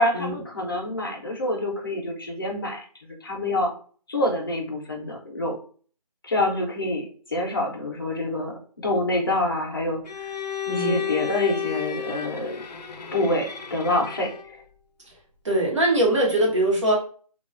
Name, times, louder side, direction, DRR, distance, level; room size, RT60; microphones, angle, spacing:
voice 1, 0.0-3.7 4.1-5.6 6.2-10.0 10.7-12.6 13.1-14.6, left 1 dB, 35° left, 0 dB, 0.6 m, -26 dB
Bowed string instrument, 10.1-14.6, left 9 dB, 90° left, 0.4 m, -32 dB
voice 2, 10.7-11.0 15.4-17.0, right 1 dB, 45° right, -2 dB, 1.0 m, -22 dB
2.3 x 2.2 x 2.3 m, 0.42 s
figure-of-eight pair, 170°, 21 cm